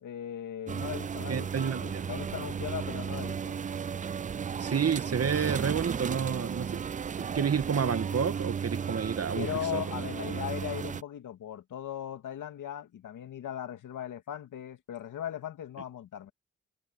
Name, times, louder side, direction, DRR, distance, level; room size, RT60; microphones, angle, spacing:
voice 1, 0.0-3.6 9.3-16.3, left 10 dB, 75° left, 2.3 m, -38 dB
sound 1, 0.7-11.0, right 7 dB, 25° right, 0.4 m, -34 dB
voice 2, 1.3-2.1 4.6-6.9 7.2-9.8, right 7 dB, 50° right, 2.1 m, -30 dB
supercardioid pair, 55°, 31 cm